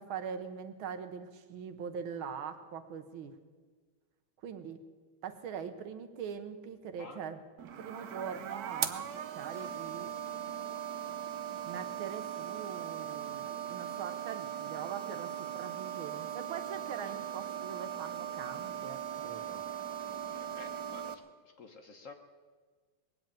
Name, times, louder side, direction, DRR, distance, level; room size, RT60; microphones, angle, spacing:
voice 1, 0.0-3.4 4.4-4.8 5.2-7.4 7.8-10.1 11.6-19.6, right 7 dB, 80° right, 9 dB, 1.9 m, -42 dB
sound 1, 7.6-21.1, right 9 dB, 60° right, 1.1 m, -39 dB
voice 2, 20.3-22.1, left 3 dB, 50° left, 5 dB, 1.2 m, -51 dB
20.0 x 8.0 x 8.9 m, 1.4 s
omnidirectional pair, 2.2 m